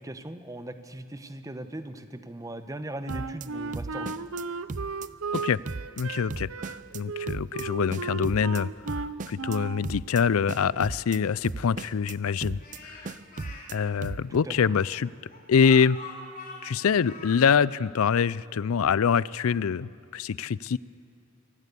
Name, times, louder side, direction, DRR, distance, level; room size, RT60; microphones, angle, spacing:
voice 1, 0.0-4.1 14.3-14.5, right 1 dB, 15° right, 9 dB, 0.9 m, -39 dB
sound 1, 3.1-3.5 3.7-4.4 4.7-5.1 5.3-6.0 6.3-7.0 7.3-7.6 7.9-8.6 8.9-9.6 9.8-10.2 10.5-11.2 11.4-12.1 12.4-12.8 13.0-13.7 14.0-14.4, right 3 dB, 35° right, 0.5 m, -36 dB
Wind instrument woodwind instrument, 3.1-9.9, right 4 dB, 75° right, 0.7 m, -35 dB
voice 2, 6.0-12.6 12.9-13.1 13.7-15.1 15.5-16.0 16.6-20.8, left 6 dB, 90° left, 21 dB, 0.4 m, -25 dB
Speech, 12.6-13.6 14.5-17.5, left 3 dB, 40° left, 4.0 m, -44 dB
24.0 x 17.5 x 8.3 m, 2.5 s
head